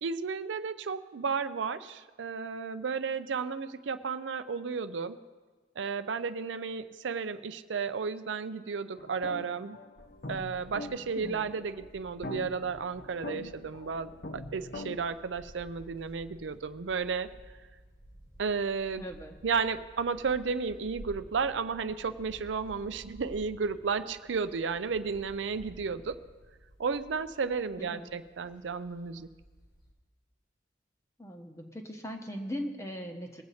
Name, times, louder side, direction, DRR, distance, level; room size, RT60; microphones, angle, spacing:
voice 1, 0.0-5.2 5.8-9.8 10.3-17.3 18.4-19.0 19.4-26.2 26.8-29.3, right 5 dB, 85° right, 11 dB, 0.5 m, -33 dB
sound 1, 8.9-15.0, left 2 dB, 55° left, 0.6 m, -43 dB
sound 2, 10.0-29.9, equal, 90° left, 3.6 m, -54 dB
voice 2, 11.1-11.5 19.0-19.3 27.8-28.1 31.2-33.4, equal, 15° left, 3 dB, 1.0 m, -39 dB
20.5 x 7.9 x 4.2 m, 1.3 s
head